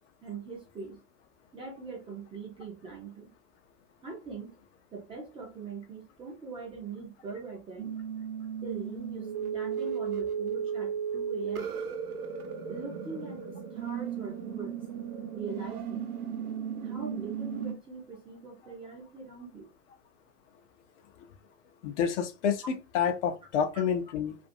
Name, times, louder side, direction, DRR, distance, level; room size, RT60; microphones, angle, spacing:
voice 1, 0.2-1.0 1.5-3.3 4.0-4.6 4.9-8.0 8.6-11.8 12.7-14.8 15.3-16.1 16.8-19.7, right 4 dB, 10° right, 0.5 m, -42 dB
sound 1, 7.8-17.7, right 7 dB, 70° right, 0.8 m, -35 dB
voice 2, 21.8-24.3, left 7 dB, 50° left, 0.6 m, -29 dB
2.5 x 2.5 x 2.6 m
hypercardioid pair, 115°, 46 cm